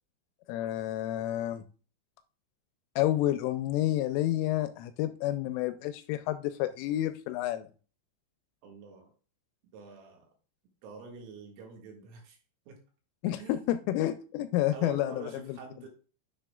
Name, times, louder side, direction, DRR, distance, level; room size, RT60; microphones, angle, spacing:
voice 1, 0.5-1.6 3.0-7.7 13.2-15.6, left 13 dB, 85° left, 11 dB, 2.9 m, -30 dB
voice 2, 8.6-9.1 9.7-10.3 10.8-12.4 12.7-12.8 13.4-13.7 14.7-15.9, right 4 dB, 75° right, 0 dB, 4.4 m, -46 dB
9.9 x 6.8 x 2.3 m, 0.37 s
omnidirectional pair, 5.9 m